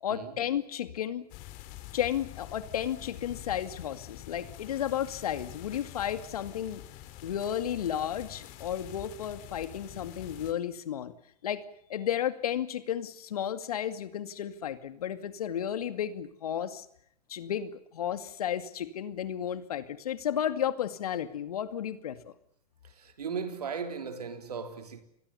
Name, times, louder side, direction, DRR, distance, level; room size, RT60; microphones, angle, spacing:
voice 1, 0.0-1.3 1.9-6.8 7.2-11.1 11.4-11.6 11.9-16.9 17.3-22.2, left 10 dB, 70° left, 2.3 m, -33 dB
sound 1, 1.3-10.5, left 14 dB, 45° left, 3.9 m, -47 dB
voice 2, 22.8-25.0, right 6 dB, 80° right, 3.6 m, -37 dB
29.0 x 22.0 x 7.0 m
hypercardioid pair, 100°, 20 cm